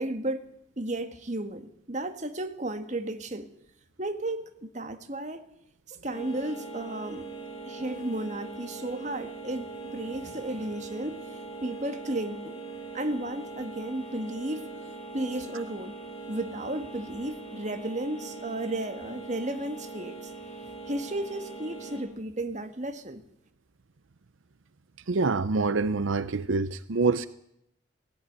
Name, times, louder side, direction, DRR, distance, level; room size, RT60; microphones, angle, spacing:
voice 1, 0.0-3.5 4.0-5.4 5.9-7.3 7.6-12.6 12.9-14.7 15.1-16.0 16.3-20.3 20.9-23.2, right 1 dB, 35° right, 1.7 m, -34 dB
sound 1, 6.1-22.0, right 3 dB, 30° left, 7.7 m, -41 dB
voice 2, 25.1-27.3, right 3 dB, 80° right, 0.7 m, -26 dB
17.5 x 16.5 x 9.3 m
head